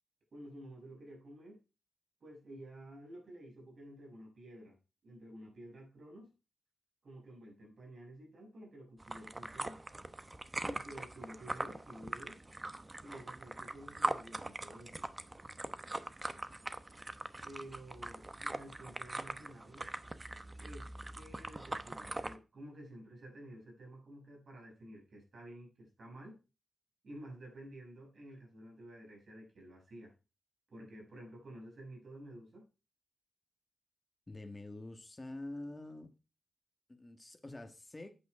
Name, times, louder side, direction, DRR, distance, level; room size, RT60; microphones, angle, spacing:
voice 1, 0.3-1.6 2.2-4.8 5.0-6.3 7.0-9.8 10.6-12.4 13.0-15.1 17.4-19.9 20.6-26.4 27.0-30.1 30.7-32.7, right 1 dB, 55° right, 6.2 m, -51 dB
sound 1, 9.0-22.4, right 2 dB, 20° right, 0.8 m, -42 dB
voice 2, 34.3-36.1 36.9-38.2, left 2 dB, 20° left, 1.4 m, -46 dB
8.7 x 8.1 x 4.8 m
wide cardioid pair, 115°, 0 cm